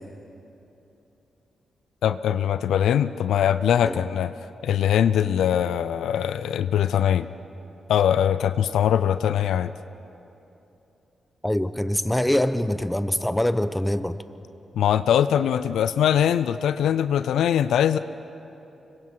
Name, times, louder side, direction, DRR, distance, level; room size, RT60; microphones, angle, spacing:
voice 1, 2.0-4.3 4.6-7.3 7.9-9.7 14.8-18.0, left 9 dB, 80° left, 13 dB, 0.4 m, -22 dB
voice 2, 11.4-14.2, left 1 dB, 10° left, 12 dB, 1.0 m, -24 dB
25.5 x 23.0 x 4.6 m, 2.9 s
supercardioid pair, 45°, 0 cm